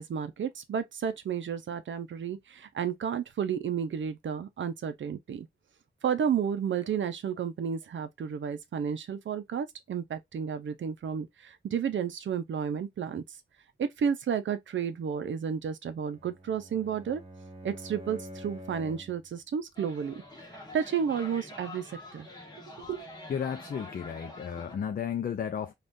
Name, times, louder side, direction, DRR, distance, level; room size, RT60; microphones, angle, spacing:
voice 1, 0.0-5.5 6.0-13.2 13.8-17.2 17.6-20.2 20.7-22.3 22.8-23.0, right 7 dB, 70° right, 0.6 m, -32 dB
Bowed string instrument, 16.1-19.3, right 1 dB, 30° right, 1.3 m, -46 dB
sound 1, 19.8-24.8, left 1 dB, 20° left, 1.1 m, -46 dB
voice 2, 23.3-25.7, left 8 dB, 45° left, 0.4 m, -33 dB
3.5 x 2.4 x 2.5 m
wide cardioid pair, 130°, 20 cm